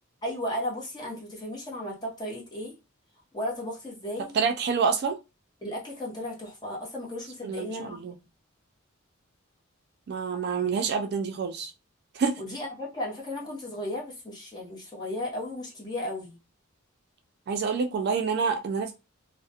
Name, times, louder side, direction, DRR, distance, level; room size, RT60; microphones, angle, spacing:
voice 1, 0.2-2.7 3.3-4.3 5.6-8.0 12.4-16.4, left 1 dB, 20° left, 0.8 m, -35 dB
voice 2, 4.3-5.2 7.4-8.2 10.1-11.7 12.1-12.4 17.5-18.9, right 5 dB, 50° right, 0.3 m, -27 dB
2.3 x 2.0 x 2.7 m
head